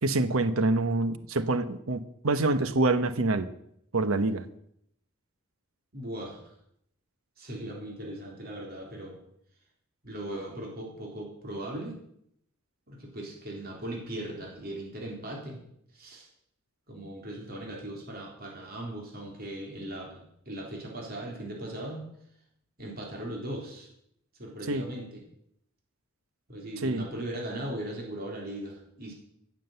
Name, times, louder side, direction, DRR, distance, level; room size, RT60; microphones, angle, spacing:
voice 1, 0.0-3.5 3.9-4.4 24.7-24.9 26.8-27.0, right 2 dB, 80° right, 12 dB, 1.0 m, -26 dB
voice 2, 5.9-6.5 7.4-9.2 10.0-12.0 12.9-15.6 15.9-16.3 16.9-22.0 22.8-23.9 24.4-25.2 26.5-29.1, right 1 dB, 45° right, -1 dB, 3.7 m, -38 dB
15.5 x 7.5 x 7.9 m, 0.74 s
head